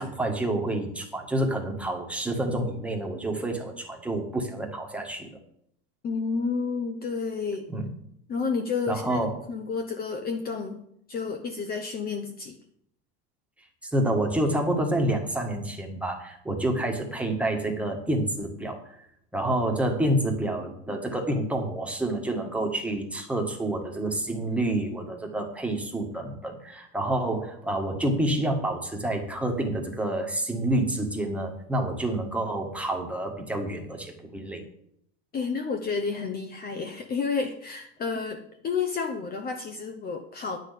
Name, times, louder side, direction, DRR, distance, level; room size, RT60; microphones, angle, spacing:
voice 1, 0.0-5.4 7.7-7.9 8.9-9.4 13.9-18.8 19.3-34.6, right 1 dB, 5° right, 1 dB, 1.7 m, -28 dB
voice 2, 6.0-7.7 8.3-10.8 11.1-12.6 35.3-40.6, left 5 dB, 25° left, 5 dB, 0.9 m, -30 dB
9.6 x 6.4 x 8.3 m, 0.71 s
supercardioid pair, 140°, 33 cm